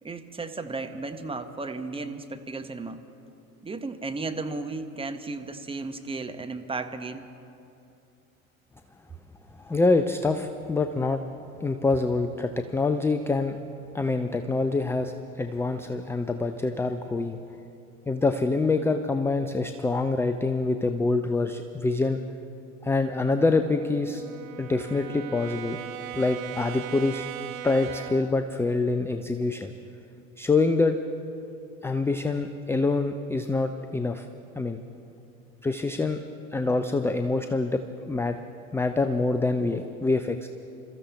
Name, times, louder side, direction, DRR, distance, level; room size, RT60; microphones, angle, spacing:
voice 1, 0.0-3.0 3.6-7.2, right 3 dB, 15° right, 7 dB, 1.0 m, -34 dB
voice 2, 9.6-11.2 11.6-13.6 13.9-17.4 18.1-22.2 22.8-24.2 24.6-25.8 26.2-27.3 27.6-29.7 30.4-31.0 31.8-34.3 34.5-34.8 35.6-36.2 36.5-38.4 38.7-40.5, left 3 dB, 5° left, 8 dB, 0.5 m, -25 dB
Brass instrument, 22.8-28.4, right 10 dB, 70° right, 1.0 m, -39 dB
28.0 x 14.0 x 3.5 m, 2.8 s
hypercardioid pair, 75°, 42 cm